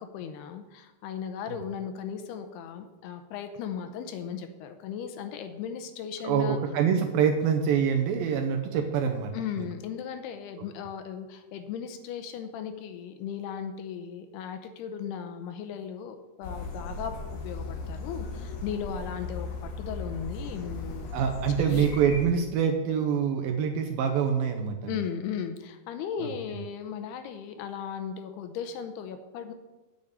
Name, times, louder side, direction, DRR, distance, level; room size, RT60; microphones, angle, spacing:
voice 1, 0.0-6.6 9.3-17.2 17.4-21.1 21.6-21.9 24.9-29.5, left 8 dB, 80° left, 8 dB, 2.7 m, -36 dB
voice 2, 6.2-9.3 9.6-9.7 21.1-25.0 26.2-26.6, right 7 dB, 75° right, 4 dB, 2.2 m, -26 dB
sound 1, 16.4-22.3, left 3 dB, 65° left, 3.2 m, -37 dB
8.7 x 6.7 x 8.5 m, 1.1 s
omnidirectional pair, 4.8 m